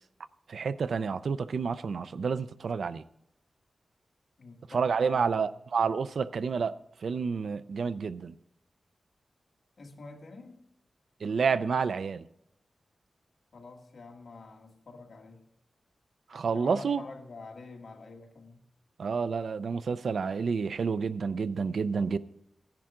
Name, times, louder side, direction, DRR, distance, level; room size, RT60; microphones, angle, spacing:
voice 1, 0.5-3.0 4.7-6.8 7.0-8.3 11.2-12.2 16.3-17.0 19.0-22.2, right 5 dB, 70° right, 0.4 m, -29 dB
voice 2, 4.4-5.4 9.8-10.6 13.5-15.4 16.4-18.6, left 3 dB, 55° left, 1.6 m, -47 dB
15.5 x 10.5 x 3.7 m
wide cardioid pair, 165°, 0 cm